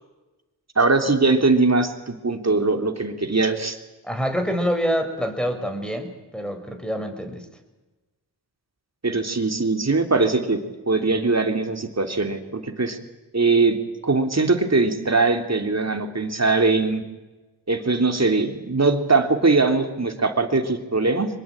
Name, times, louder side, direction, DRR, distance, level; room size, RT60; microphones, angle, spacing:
voice 1, 0.7-3.8 9.0-10.6 10.9-13.0 13.3-13.8 14.0-17.0 17.7-21.3, right 3 dB, 35° right, 6 dB, 3.3 m, -21 dB
voice 2, 4.0-7.5, equal, ahead, 6 dB, 5.5 m, -26 dB
24.0 x 22.0 x 9.0 m, 1.1 s
cardioid pair, 50°, 43 cm